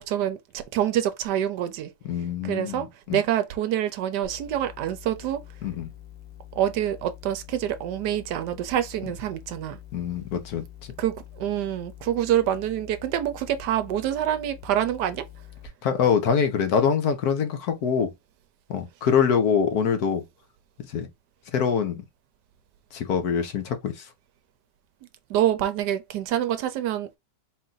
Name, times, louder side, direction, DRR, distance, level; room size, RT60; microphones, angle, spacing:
voice 1, 0.0-1.9 2.4-5.4 6.6-9.8 11.0-15.3 25.3-27.2, right 11 dB, 75° right, 1.1 m, -26 dB
voice 2, 2.0-3.2 5.6-5.9 9.9-10.6 15.8-18.1 18.7-20.2 20.9-21.1 21.5-22.0 22.9-24.1, left 7 dB, 65° left, 1.1 m, -24 dB
sound 1, 4.2-15.7, left 12 dB, 85° left, 1.9 m, -46 dB
4.3 x 2.5 x 3.8 m
omnidirectional pair, 1.9 m